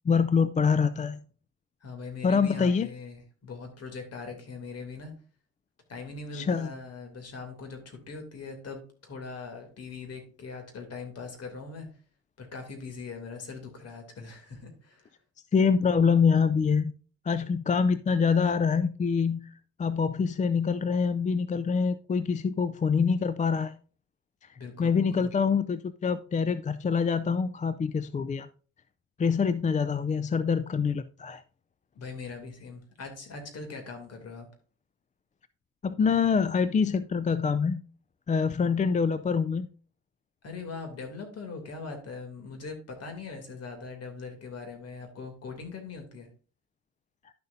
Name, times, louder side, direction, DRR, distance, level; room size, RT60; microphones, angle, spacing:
voice 1, 0.1-1.2 2.2-2.9 6.3-6.7 15.5-16.9 17.3-19.5 19.8-23.7 24.8-28.5 29.2-31.4 35.8-37.8 38.3-39.7, left 5 dB, 25° left, 14 dB, 0.4 m, -25 dB
voice 2, 1.8-5.1 5.9-11.9 12.4-15.1 24.5-25.3 31.9-34.5 40.4-46.3, left 4 dB, 55° left, 4 dB, 2.8 m, -41 dB
11.0 x 6.6 x 2.6 m, 0.39 s
cardioid pair, 90°, 30 cm